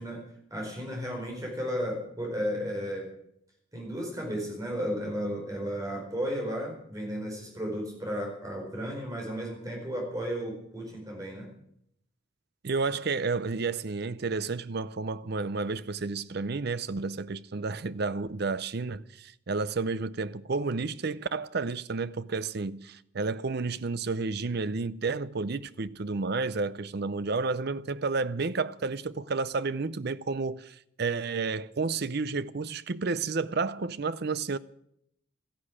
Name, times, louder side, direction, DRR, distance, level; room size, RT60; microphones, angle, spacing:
voice 1, 0.0-3.1 3.7-11.5, equal, 15° right, 4.8 m, -34 dB
voice 2, 12.6-34.6, right 4 dB, 50° right, 0.6 m, -31 dB
14.0 x 11.5 x 8.6 m
head